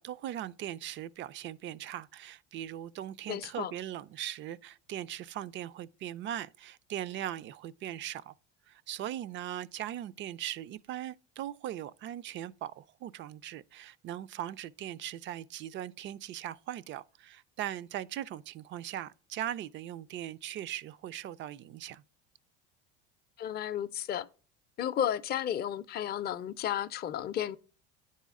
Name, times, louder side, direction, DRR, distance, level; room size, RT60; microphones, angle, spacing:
voice 1, 0.0-8.3 8.7-22.0, right 12 dB, 40° right, 0.4 m, -39 dB
voice 2, 3.3-3.7 23.4-24.3 24.8-27.6, left 10 dB, 35° left, 0.5 m, -33 dB
9.8 x 4.2 x 3.6 m
supercardioid pair, 100°, 30 cm